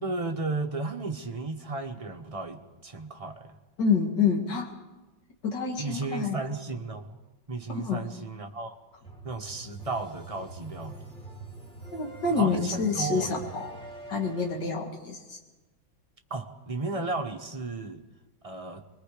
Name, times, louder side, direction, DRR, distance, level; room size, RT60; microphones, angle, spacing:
voice 1, 0.0-3.5 5.8-7.1 7.5-8.8 9.2-11.2 12.3-13.4 16.3-18.0 18.4-18.8, right 3 dB, 25° right, 4 dB, 0.7 m, -34 dB
voice 2, 3.8-4.7 5.4-6.4 7.7-8.0 11.9-13.7 14.1-15.4, left 5 dB, 65° left, 1 dB, 2.8 m, -27 dB
sound 1, 9.0-14.6, right 3 dB, 5° left, 2.6 m, -44 dB
24.0 x 21.5 x 5.1 m, 1.2 s
omnidirectional pair, 2.1 m